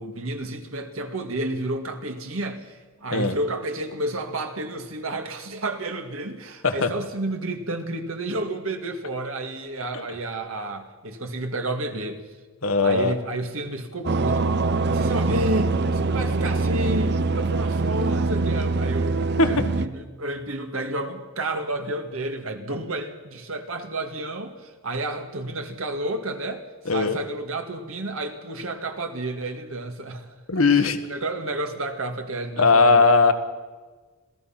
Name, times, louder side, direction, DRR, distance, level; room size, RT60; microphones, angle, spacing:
voice 1, 0.0-12.2 12.8-14.6 14.9-19.1 19.4-30.4 30.7-33.1, right 2 dB, 70° right, 5 dB, 2.1 m, -31 dB
voice 2, 12.6-13.1 19.4-19.5 26.8-27.2 30.5-31.0 32.6-33.3, left 4 dB, 75° left, 7 dB, 1.6 m, -18 dB
sound 1, 14.0-19.9, right 3 dB, 50° right, 0.7 m, -23 dB
26.5 x 17.5 x 5.9 m, 1.3 s
head